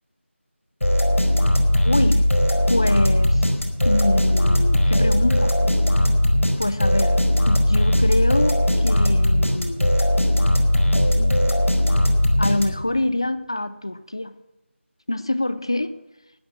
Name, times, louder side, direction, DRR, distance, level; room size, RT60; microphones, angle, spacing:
sound 1, 0.8-13.0, left 1 dB, 80° left, 4.9 m, -19 dB
voice 1, 1.8-2.3 2.7-3.4 3.8-5.5 6.6-7.2 7.5-9.9 12.4-14.3 15.1-16.0, left 1 dB, 25° left, 0.4 m, -25 dB
14.0 x 9.6 x 7.6 m
figure-of-eight pair, 175°, 7 cm